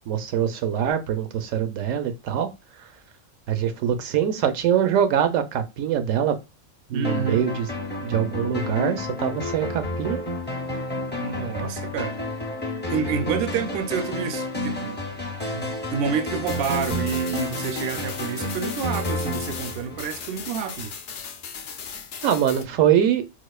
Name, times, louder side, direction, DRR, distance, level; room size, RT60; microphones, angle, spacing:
voice 1, 0.1-2.5 3.5-6.4 6.9-7.7 8.0-10.2 22.2-23.2, right 9 dB, 85° right, 1.0 m, -23 dB
voice 2, 6.9-7.5 11.2-12.2 12.9-15.0 15.5-20.9, right 7 dB, 60° right, 0.6 m, -29 dB
sound 1, 7.0-20.6, left 2 dB, 15° left, 0.4 m, -30 dB
sound 2, 16.4-22.6, left 6 dB, 60° left, 0.6 m, -37 dB
4.1 x 2.4 x 2.3 m
omnidirectional pair, 1.3 m